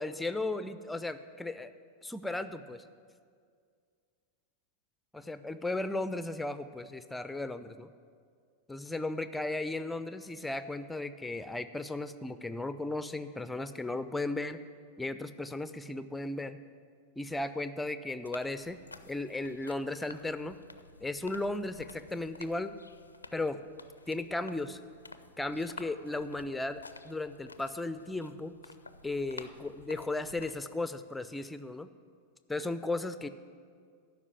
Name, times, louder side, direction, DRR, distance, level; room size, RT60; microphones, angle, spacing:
voice 1, 0.0-1.7 2.0-2.8 5.1-7.9 8.7-14.6 15.0-16.6 17.2-18.8 19.1-20.6 21.0-22.7 23.3-23.6 24.1-24.8 25.4-28.5 29.0-31.9 32.5-33.3, left 2 dB, 5° left, 12 dB, 0.5 m, -35 dB
sound 1, 18.2-30.5, left 3 dB, 80° left, 0.4 m, -51 dB
12.5 x 5.4 x 8.1 m, 2.1 s
figure-of-eight pair, 90°, 0 cm